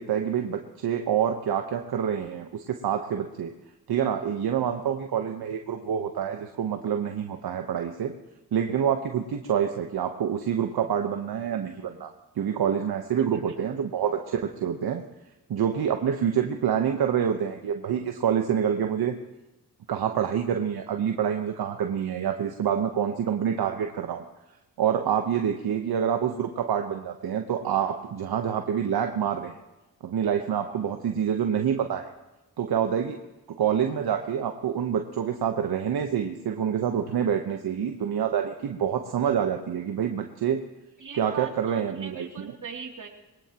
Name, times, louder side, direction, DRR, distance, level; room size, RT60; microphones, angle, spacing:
voice 1, 0.0-3.5 3.9-8.1 8.5-15.0 15.5-19.1 19.9-24.2 24.8-29.6 30.0-32.1 32.6-33.2 33.6-40.6 41.2-42.5, right 8 dB, 70° right, 5 dB, 1.1 m, -27 dB
voice 2, 13.2-13.8 25.3-25.4 41.0-43.1, right 7 dB, 50° right, 1 dB, 3.0 m, -40 dB
21.5 x 18.0 x 3.0 m, 1.0 s
supercardioid pair, 50°, 39 cm